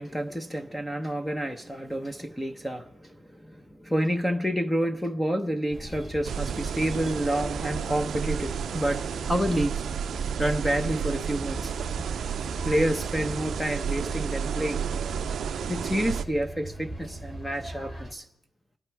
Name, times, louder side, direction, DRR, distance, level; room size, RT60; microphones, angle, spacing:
voice 1, 0.0-9.8 10.4-11.7 12.6-14.8 15.7-18.2, equal, 5° left, 0.9 m, -29 dB
sound 1, 5.7-18.1, right 1 dB, 20° left, 3.5 m, -40 dB
sound 2, 6.2-16.2, right 8 dB, 60° right, 0.5 m, -31 dB
26.0 x 8.9 x 4.7 m
cardioid pair, 115°, 0 cm